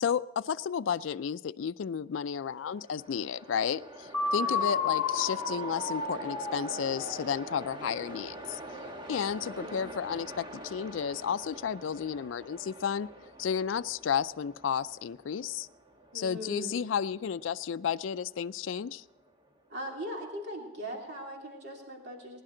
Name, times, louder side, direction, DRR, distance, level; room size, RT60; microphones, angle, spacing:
voice 1, 0.0-8.6 9.1-13.1 13.4-15.7 16.1-19.0, left 7 dB, 80° left, 13 dB, 0.4 m, -32 dB
Train, 2.4-19.6, right 1 dB, 25° right, 1.3 m, -46 dB
sound 1, 4.1-8.0, left 4 dB, 25° left, 2.2 m, -32 dB
voice 2, 16.1-16.7 19.7-22.4, equal, 60° right, 0 dB, 2.9 m, -40 dB
21.0 x 11.0 x 3.8 m, 1.1 s
head